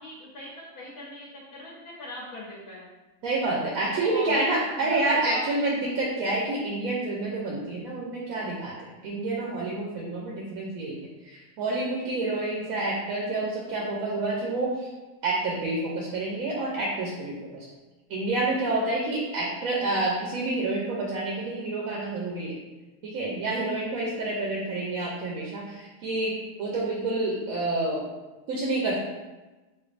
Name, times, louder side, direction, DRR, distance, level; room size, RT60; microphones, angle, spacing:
voice 1, 0.0-2.8 3.9-5.4, left 1 dB, 70° left, -6 dB, 1.2 m, -40 dB
voice 2, 3.2-11.0 11.2-14.9 15.2-17.7 18.1-22.6 23.0-28.1 28.5-29.0, right 2 dB, 70° right, -3 dB, 0.9 m, -28 dB
4.4 x 2.5 x 2.4 m, 1.1 s
omnidirectional pair, 1.7 m